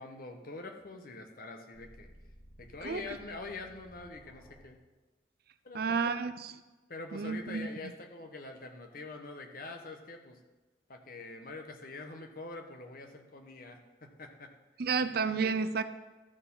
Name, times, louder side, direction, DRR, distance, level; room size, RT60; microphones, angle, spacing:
voice 1, 0.0-2.1 2.6-4.8 5.6-6.0 6.9-10.4 10.9-14.5 15.4-15.5, left 3 dB, 55° left, 5 dB, 1.1 m, -45 dB
sound 1, 1.7-4.7, equal, ahead, 1.9 m, -56 dB
voice 2, 5.7-6.6 7.1-7.7 14.8-15.8, right 5 dB, 60° right, 11 dB, 0.5 m, -31 dB
13.5 x 4.6 x 5.5 m, 1.2 s
head